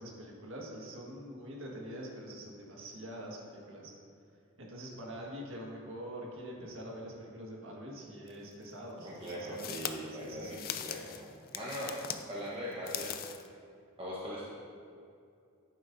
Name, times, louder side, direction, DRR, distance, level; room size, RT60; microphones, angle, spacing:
voice 1, 0.0-3.9 4.6-9.7 10.1-10.6, equal, 60° right, -3 dB, 1.7 m, -45 dB
sound 1, 8.3-8.4 9.2-12.2 12.7-13.5, left 9 dB, 40° left, 0.4 m, -40 dB
voice 2, 9.0-13.1 14.0-14.5, equal, 25° right, -7 dB, 1.1 m, -41 dB
10.5 x 9.1 x 2.7 m, 2.4 s
head